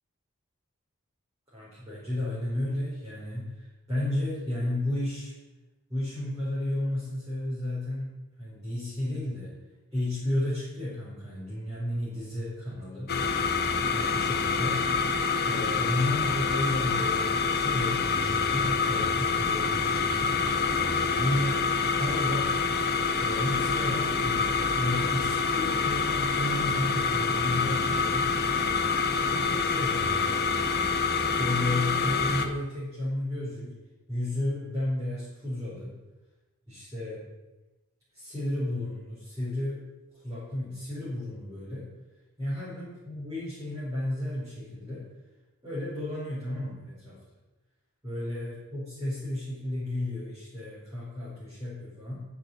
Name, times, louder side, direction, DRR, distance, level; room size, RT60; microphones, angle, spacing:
voice 1, 1.5-5.3 5.9-9.6 9.9-13.1 13.9-14.7 15.4-20.4 21.1-21.6 21.9-22.6 23.2-28.6 29.2-30.3 31.4-33.8 34.1-36.0 36.7-37.2 38.1-39.9 40.1-41.9 42.4-45.1 45.6-47.2 48.0-52.2, left 1 dB, 15° right, -11 dB, 4.9 m, -33 dB
sound 1, 13.1-32.5, left 4 dB, 45° left, 1.1 m, -26 dB
11.0 x 7.0 x 8.1 m, 1.1 s
head